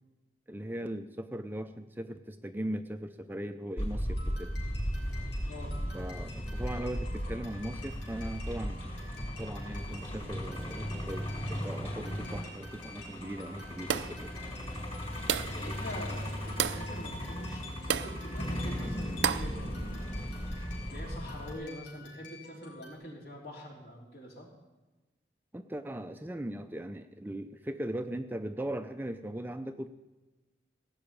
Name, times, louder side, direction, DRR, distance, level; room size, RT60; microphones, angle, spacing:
voice 1, 0.5-4.6 5.9-9.0 9.4-14.4 25.5-29.9, right 1 dB, 10° right, 8 dB, 0.4 m, -39 dB
Truck, 3.8-21.5, equal, 35° left, 4.5 m, -37 dB
sound 1, 4.1-22.9, left 3 dB, 90° left, 4.6 m, -51 dB
sound 2, 13.9-14.3 15.3-15.6 16.6-16.9 17.9-18.2 19.2-19.6, right 8 dB, 80° right, 0.5 m, -30 dB
voice 2, 15.5-24.5, equal, 60° left, -2 dB, 3.5 m, -45 dB
17.0 x 6.2 x 8.9 m, 1.1 s
head